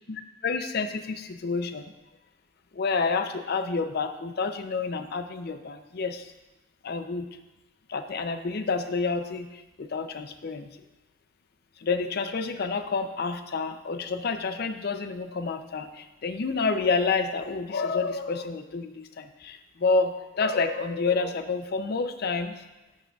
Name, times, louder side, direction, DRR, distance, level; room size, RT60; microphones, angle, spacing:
voice 1, 0.1-1.9 2.7-6.3 6.8-7.4 7.9-10.7 11.8-22.6, left 4 dB, 45° left, 9 dB, 0.4 m, -29 dB
11.0 x 6.2 x 2.3 m, 1.0 s
head